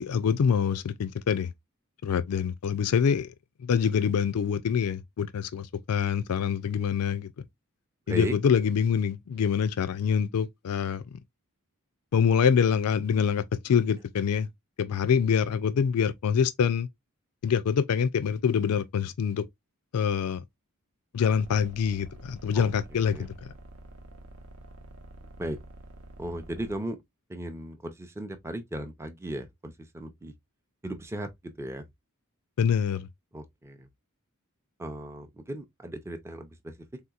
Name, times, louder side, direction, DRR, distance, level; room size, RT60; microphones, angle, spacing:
voice 1, 0.0-1.5 2.0-3.3 3.6-7.3 8.1-11.2 12.1-14.5 14.8-16.9 17.4-19.4 19.9-20.4 21.1-23.3 32.6-33.1, left 7 dB, 85° left, 0.4 m, -25 dB
voice 2, 8.1-8.4 22.5-23.3 25.4-25.6 26.2-27.0 27.3-30.3 30.8-31.9 33.3-33.9 34.8-37.0, right 1 dB, 10° right, 0.4 m, -37 dB
sound 1, 21.3-26.8, right 1 dB, 70° right, 0.7 m, -48 dB
3.7 x 2.8 x 2.3 m
head